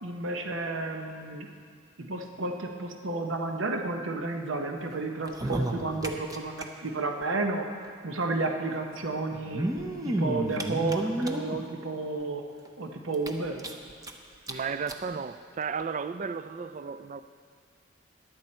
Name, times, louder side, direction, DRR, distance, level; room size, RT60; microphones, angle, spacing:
voice 1, 0.0-1.5 2.0-9.6 10.0-12.4 12.8-13.6, right 3 dB, 75° right, 4 dB, 0.9 m, -32 dB
sound 1, 5.2-6.6 6.9-7.0 7.2-7.3 8.4-8.5 9.3-11.6 12.2-12.3 12.6-12.7 13.1-14.1 14.5-14.6 14.9-15.0 15.8-15.9, right 1 dB, 20° right, 0.7 m, -31 dB
voice 2, 14.5-17.2, right 5 dB, 35° right, 12 dB, 0.3 m, -34 dB
15.0 x 10.5 x 4.3 m, 2.2 s
head